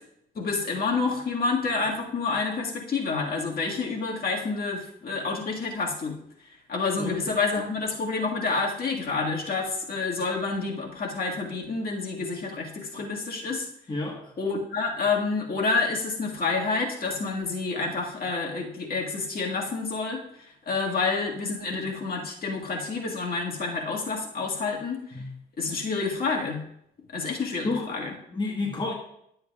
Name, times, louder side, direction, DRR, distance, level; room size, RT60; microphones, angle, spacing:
voice 1, 0.3-6.2 6.7-13.7 14.4-20.2 20.6-25.0 25.6-26.6 27.1-28.1, left 4 dB, 50° left, -1 dB, 1.8 m, -28 dB
voice 2, 13.9-14.3 25.1-25.4 27.6-27.9 28.3-28.9, left 3 dB, 25° left, 0 dB, 1.3 m, -30 dB
11.5 x 7.7 x 2.4 m, 0.73 s
cardioid pair, 90°, 20 cm